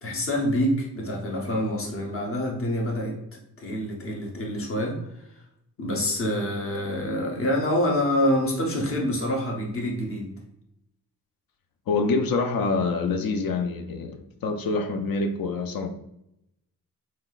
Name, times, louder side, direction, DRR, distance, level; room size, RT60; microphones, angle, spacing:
voice 1, 0.0-5.0 5.8-10.3, left 1 dB, 35° left, 0 dB, 0.9 m, -26 dB
voice 2, 11.9-15.9, left 3 dB, 70° left, 7 dB, 0.6 m, -26 dB
5.8 x 3.1 x 2.4 m, 0.80 s
wide cardioid pair, 180°, 37 cm